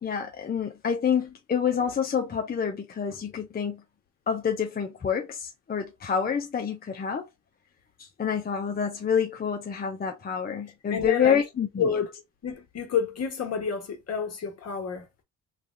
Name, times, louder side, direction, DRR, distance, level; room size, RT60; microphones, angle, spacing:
voice 1, 0.0-3.8 4.3-7.3 8.0-12.0, left 7 dB, 30° left, 0.7 m, -28 dB
voice 2, 10.9-11.4 11.8-12.1 12.4-15.1, left 7 dB, 55° left, 1.5 m, -29 dB
3.3 x 2.5 x 3.6 m
cardioid pair, 90°, 30 cm